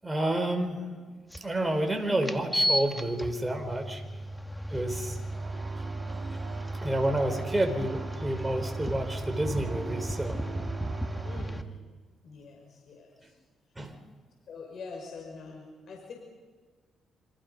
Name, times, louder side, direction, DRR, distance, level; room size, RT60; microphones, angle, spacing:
voice 1, 0.0-1.0 1.4-4.0 4.7-5.2 6.8-10.4 13.8-14.0, right 1 dB, 15° right, 5 dB, 4.5 m, -29 dB
sound 1, 1.3-1.4 2.2-11.6, right 1 dB, 5° left, 1.5 m, -34 dB
sound 2, 5.3-11.4, right 6 dB, 55° right, 1.9 m, -44 dB
voice 2, 11.2-11.8 12.2-13.3 14.5-16.1, left 4 dB, 60° left, 0 dB, 5.6 m, -44 dB
27.5 x 26.5 x 5.4 m, 1.4 s
cardioid pair, 90°, 0 cm